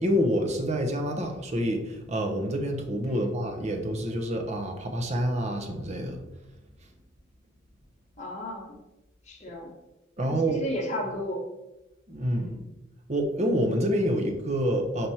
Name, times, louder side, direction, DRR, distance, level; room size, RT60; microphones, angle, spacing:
voice 1, 0.0-6.2 10.2-10.6 12.1-12.5 13.1-15.1, equal, 35° right, 4 dB, 0.8 m, -27 dB
voice 2, 8.2-8.8 9.3-9.7 10.2-11.4 12.3-12.6, equal, 35° left, -2 dB, 1.3 m, -34 dB
5.2 x 4.5 x 4.2 m, 0.97 s
head